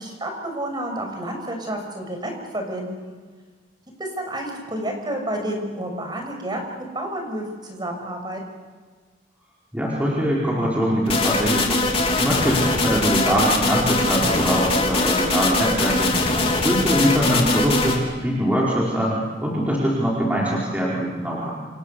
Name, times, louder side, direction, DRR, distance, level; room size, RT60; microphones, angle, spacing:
voice 1, 0.0-3.1 4.0-8.4 16.3-16.6, right 1 dB, 25° right, 3 dB, 6.5 m, -30 dB
voice 2, 9.7-11.8 12.2-16.1 16.6-21.5, equal, 10° right, -5 dB, 4.9 m, -22 dB
sound 1, 11.1-18.0, left 2 dB, 35° left, 3.8 m, -21 dB
29.0 x 28.0 x 7.0 m, 1.5 s
head